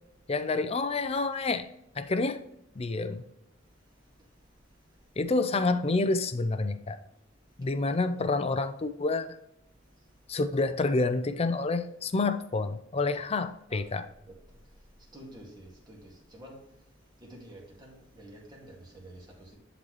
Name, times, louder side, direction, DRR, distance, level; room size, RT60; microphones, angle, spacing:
voice 1, 0.3-1.7 2.0-2.4 2.8-3.2 5.2-7.0 7.6-9.4 10.3-14.0, left 3 dB, 30° left, 0.5 m, -28 dB
voice 2, 3.6-5.2 7.3-7.7 9.7-10.3 13.7-19.6, right 1 dB, 20° right, 2.0 m, -52 dB
10.5 x 4.0 x 3.1 m
head